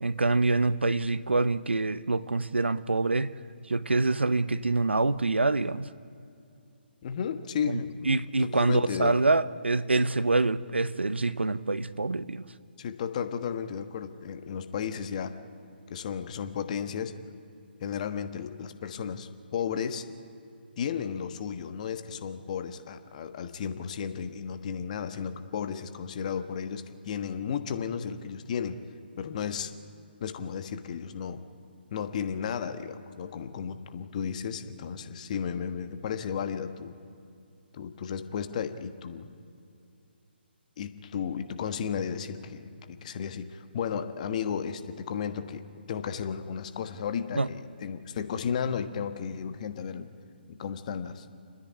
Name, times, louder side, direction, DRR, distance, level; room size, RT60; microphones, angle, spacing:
voice 1, 0.0-3.3 3.7-5.9 7.7-12.4 47.3-47.5, right 3 dB, 85° right, 0.8 m, -26 dB
voice 2, 7.0-9.2 12.8-15.3 15.9-17.1 17.8-20.0 20.8-28.8 29.2-29.7 30.2-31.4 31.9-36.9 37.7-39.3 40.8-45.6 45.9-50.1 50.5-51.2, left 7 dB, 40° left, 1.3 m, -34 dB
29.5 x 10.0 x 9.5 m
figure-of-eight pair, 140°, 6 cm